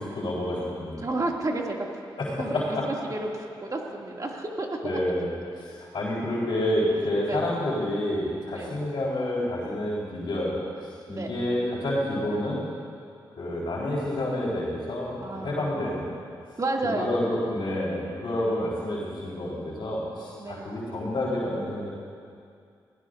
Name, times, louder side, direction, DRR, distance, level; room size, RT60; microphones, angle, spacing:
voice 1, 0.0-1.0 2.2-2.8 4.8-10.6 11.1-12.6 13.4-16.1 16.8-21.9, left 1 dB, 65° left, -6 dB, 4.1 m, -29 dB
voice 2, 1.0-2.1 2.4-5.0 7.2-7.5 8.5-8.8 11.1-11.3 15.2-15.7 16.6-17.2 20.4-20.8, right 2 dB, 40° right, -1 dB, 2.5 m, -31 dB
21.0 x 16.0 x 2.6 m, 2.3 s
supercardioid pair, 40°, 9 cm